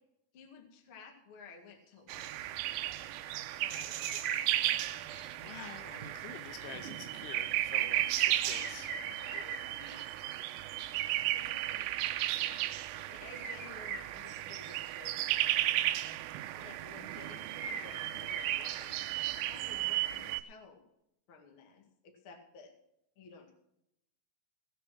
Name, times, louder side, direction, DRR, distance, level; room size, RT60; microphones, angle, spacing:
voice 1, 0.3-3.2 3.6-4.4 7.8-10.0 11.3-11.9 12.3-15.1 16.4-20.8 21.3-22.7 23.1-23.5, left 4 dB, 60° left, 4 dB, 1.3 m, -55 dB
sound 1, 2.1-20.4, right 15 dB, 85° right, 3.3 m, -35 dB
sound 2, 3.3-3.4 3.7-6.0 6.6-6.7 8.1-10.6 11.7-11.9 12.2-12.6 12.9-15.3 17.5-19.4, right 6 dB, 60° right, 3.0 m, -42 dB
voice 2, 5.2-8.9, left 9 dB, 80° left, 10 dB, 2.7 m, -48 dB
19.0 x 6.8 x 6.0 m, 0.80 s
omnidirectional pair, 5.8 m